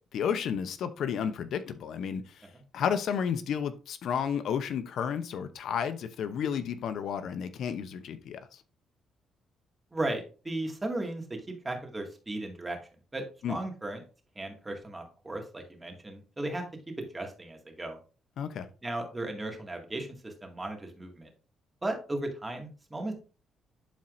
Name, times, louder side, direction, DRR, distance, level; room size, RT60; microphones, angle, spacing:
voice 1, 0.1-2.4 2.7-8.6 13.4-13.6 18.4-18.7, left 7 dB, 70° left, 11 dB, 0.7 m, -32 dB
voice 2, 9.9-12.8 13.1-14.0 14.4-16.6 17.0-18.0 18.8-21.3 21.8-23.1, right 2 dB, 20° right, 3 dB, 2.1 m, -36 dB
11.5 x 4.3 x 2.6 m, 0.35 s
cardioid pair, 90°, 0 cm